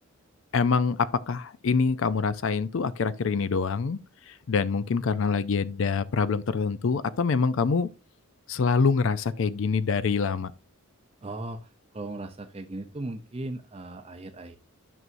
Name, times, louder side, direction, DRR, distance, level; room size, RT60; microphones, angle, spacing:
voice 1, 0.5-4.0 4.3-7.9 8.5-10.5, left 5 dB, 60° left, 0.4 m, -25 dB
voice 2, 11.2-14.6, right 2 dB, 25° right, 0.6 m, -37 dB
11.0 x 6.1 x 2.6 m
head